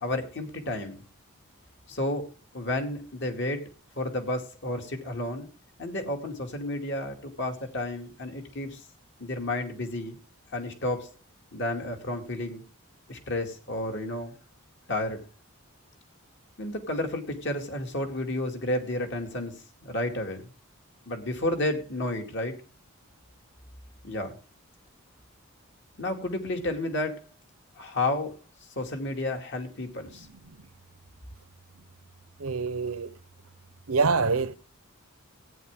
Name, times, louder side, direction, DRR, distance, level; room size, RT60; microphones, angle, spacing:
voice 1, 0.0-1.0 1.9-2.3 2.5-3.6 4.0-5.5 5.8-8.8 9.2-10.2 10.5-11.1 11.5-12.6 13.1-14.4 14.9-15.2 16.6-19.5 19.8-20.5 21.1-22.6 24.0-24.4 26.0-27.3 27.8-28.4 28.8-30.3, left 1 dB, 55° left, 2.3 m, -31 dB
voice 2, 32.4-33.1 33.9-34.6, right 4 dB, 80° right, 0.9 m, -25 dB
15.5 x 9.3 x 3.6 m
head